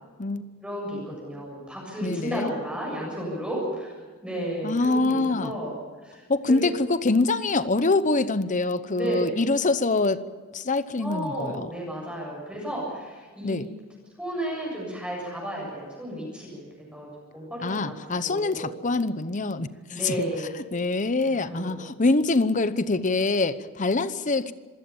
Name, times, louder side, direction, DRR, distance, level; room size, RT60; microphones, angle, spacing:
voice 1, 0.6-3.9 4.2-5.7 6.0-6.6 8.9-9.4 11.0-13.6 14.2-17.9 18.2-18.7 19.9-20.6 21.3-21.8, right 1 dB, 5° right, -3 dB, 7.4 m, -33 dB
voice 2, 2.0-2.5 4.6-5.5 6.3-10.2 10.5-11.7 13.4-13.7 17.6-20.3 20.5-24.5, left 3 dB, 35° left, 14 dB, 0.9 m, -25 dB
26.5 x 16.5 x 7.2 m, 1.4 s
head